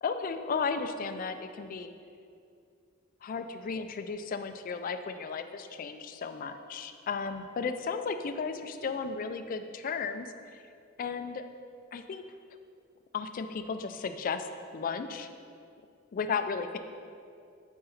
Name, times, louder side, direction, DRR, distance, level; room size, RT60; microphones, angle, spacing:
voice 1, 0.0-1.9 3.2-10.6 11.0-11.4 11.9-12.2 13.1-14.5 14.7-15.3 16.1-16.8, left 5 dB, 40° left, 8 dB, 0.3 m, -34 dB
8.3 x 3.9 x 3.9 m, 2.4 s
head